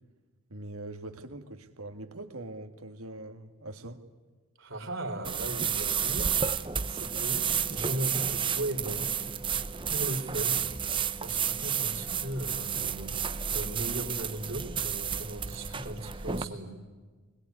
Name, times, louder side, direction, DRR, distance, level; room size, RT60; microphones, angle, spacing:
voice 1, 0.5-4.0, right 2 dB, 80° right, 6 dB, 2.0 m, -42 dB
voice 2, 4.6-6.3 6.9-9.1 9.9-10.7 11.2-13.1 13.5-16.7, right 1 dB, 60° right, 5 dB, 3.7 m, -37 dB
sound 1, 5.2-16.4, right 7 dB, 25° right, 0.8 m, -31 dB
22.5 x 21.0 x 9.5 m, 1.4 s
head